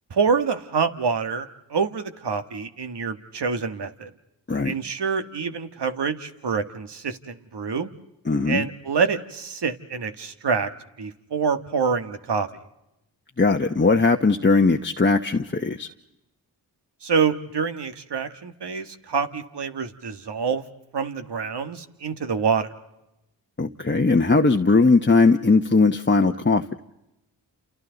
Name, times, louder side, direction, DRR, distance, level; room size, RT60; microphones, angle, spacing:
voice 1, 0.1-4.1 4.6-7.9 8.5-10.7 11.0-12.5 17.0-20.6 20.9-22.7, right 5 dB, 65° right, 8 dB, 1.7 m, -26 dB
voice 2, 8.3-8.6 13.4-15.9 23.6-26.6, left 3 dB, 25° left, 3 dB, 1.0 m, -19 dB
29.5 x 28.5 x 4.0 m, 0.89 s
cardioid pair, 45°, 44 cm